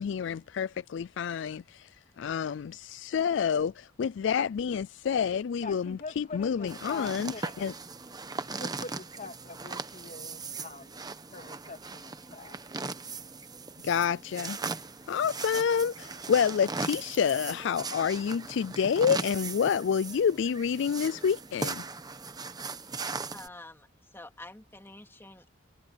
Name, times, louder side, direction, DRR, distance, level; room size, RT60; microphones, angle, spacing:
voice 1, 0.0-1.9 2.2-7.7 13.8-14.6 15.1-21.8, left 7 dB, 65° left, 0.3 m, -28 dB
voice 2, 5.6-7.8 8.4-11.0 11.3-12.6, left 3 dB, 40° left, 2.8 m, -43 dB
sound 1, 6.7-23.5, right 4 dB, 20° right, 1.0 m, -39 dB
voice 3, 22.9-23.9 24.1-25.5, left 2 dB, 15° left, 2.4 m, -48 dB
head